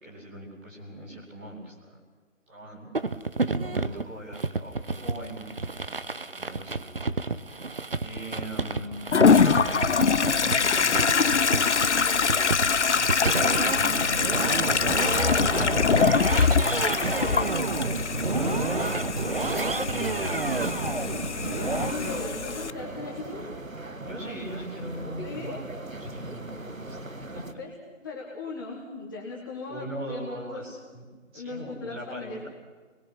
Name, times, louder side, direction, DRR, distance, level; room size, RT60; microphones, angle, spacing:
voice 1, 0.0-2.0 2.5-2.9 3.6-7.4 8.0-8.9 9.3-21.3 24.0-25.6 26.0-27.4 29.7-31.0 31.3-32.5, right 1 dB, 10° right, -6 dB, 2.7 m, -41 dB
sound 1, 2.9-21.9, right 3 dB, 45° right, 0.9 m, -30 dB
Toilet flush, 9.1-22.7, left 5 dB, 60° left, 0.6 m, -24 dB
sound 2, 13.3-27.5, right 2 dB, 90° right, 1.7 m, -38 dB
voice 2, 21.5-23.4 25.2-25.6 27.6-27.7 28.0-30.6 31.3-32.5, left 3 dB, 15° left, -5 dB, 1.9 m, -38 dB
24.0 x 21.5 x 6.0 m, 1.4 s
figure-of-eight pair, 160°, 39 cm